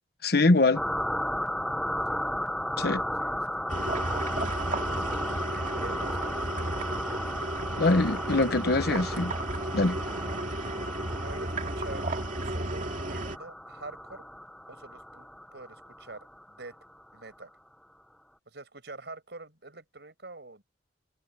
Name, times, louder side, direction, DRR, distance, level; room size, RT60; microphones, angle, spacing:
voice 1, 0.2-0.8 2.8-3.0 7.8-9.3 9.7-10.0, left 2 dB, 65° left, 1.1 m, -23 dB
sound 1, 0.7-17.0, left 1 dB, 5° left, 0.6 m, -35 dB
voice 2, 3.2-3.6 4.5-7.2 7.7-8.6 11.2-12.1 12.4-14.3 14.7-16.8 17.1-17.5 18.5-20.6, right 3 dB, 75° right, 5.6 m, -46 dB
sound 2, 3.7-13.4, right 2 dB, 50° right, 2.4 m, -33 dB
head